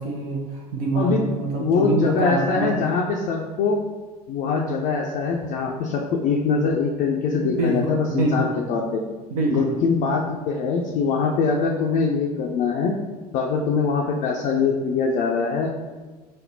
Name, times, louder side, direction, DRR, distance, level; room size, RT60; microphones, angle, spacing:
voice 1, 0.0-2.7 7.4-8.5 9.3-9.7, right 2 dB, 65° right, -1 dB, 0.6 m, -25 dB
voice 2, 1.6-3.8 4.3-9.0 9.5-13.0 13.3-15.7, left 5 dB, 45° left, -1 dB, 0.4 m, -23 dB
5.2 x 2.0 x 2.7 m, 1.3 s
figure-of-eight pair, 70°, 20 cm